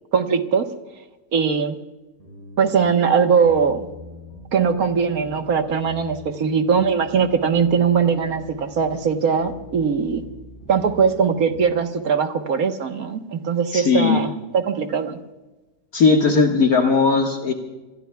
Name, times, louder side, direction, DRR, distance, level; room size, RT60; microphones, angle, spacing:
voice 1, 0.1-0.7 1.3-1.8 2.6-3.9 4.5-10.2 10.7-15.2, right 6 dB, 60° right, 6 dB, 1.6 m, -20 dB
sound 1, 2.2-11.7, left 1 dB, 40° right, 8.3 m, -42 dB
voice 2, 13.7-14.2 15.9-17.5, left 4 dB, 60° left, 1 dB, 2.0 m, -17 dB
27.5 x 20.5 x 2.3 m, 1.1 s
omnidirectional pair, 1.8 m